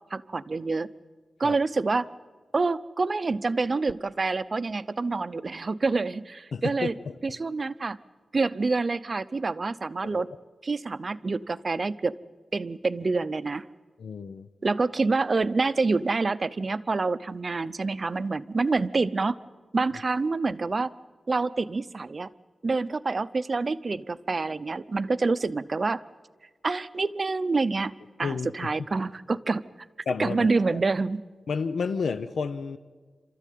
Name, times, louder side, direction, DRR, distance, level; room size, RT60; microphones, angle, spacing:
voice 1, 0.1-0.9 1.4-2.1 2.5-6.9 7.2-8.0 8.3-10.3 10.6-12.1 12.5-13.6 14.6-19.4 19.7-20.9 21.3-22.3 22.6-26.0 26.6-27.9 28.2-29.6 30.2-31.2, right 3 dB, 35° right, 15 dB, 0.6 m, -27 dB
voice 2, 6.5-6.9 10.0-10.3 14.0-14.5 28.2-28.7 30.1-30.4 30.7-30.8 31.5-32.8, left 5 dB, 90° left, 9 dB, 0.8 m, -31 dB
28.0 x 13.5 x 9.3 m, 1.4 s
wide cardioid pair, 170°, 0 cm